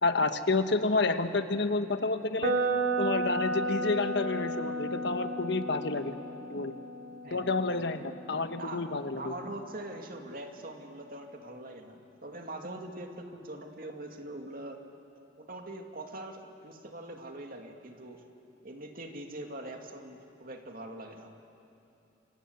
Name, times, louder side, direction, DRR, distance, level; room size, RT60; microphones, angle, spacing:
voice 1, 0.0-2.5 3.0-6.2 6.5-6.7 7.3-9.3, left 3 dB, 65° left, 8 dB, 1.3 m, -29 dB
sound 1, 2.4-10.3, right 2 dB, 70° right, 3.0 m, -34 dB
voice 2, 8.5-8.9 9.1-14.8 15.4-18.2 18.6-21.4, right 1 dB, 50° right, 3 dB, 2.4 m, -43 dB
28.0 x 26.0 x 8.1 m, 2.8 s
head